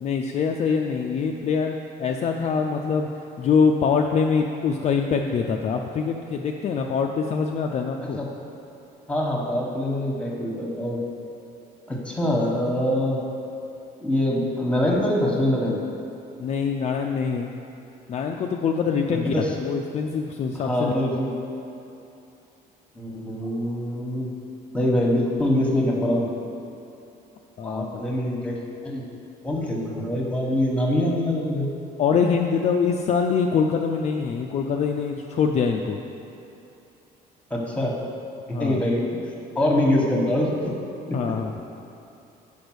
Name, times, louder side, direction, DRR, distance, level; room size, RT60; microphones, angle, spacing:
voice 1, 0.0-3.1 3.4-8.2 16.4-17.5 18.1-19.3 19.6-20.9 27.6-28.0 32.0-36.0 38.5-38.8 41.1-41.5, left 6 dB, 40° left, 2 dB, 0.4 m, -24 dB
voice 2, 9.1-11.0 11.9-13.2 14.0-15.8 19.1-19.5 20.5-21.3 22.9-24.3 24.7-26.3 27.6-29.0 29.4-31.7 37.5-38.0 38.5-39.0 39.5-40.7 41.1-41.2, left 1 dB, 5° left, -1 dB, 1.2 m, -24 dB
5.2 x 5.1 x 6.2 m, 2.9 s
cardioid pair, 110°, 17 cm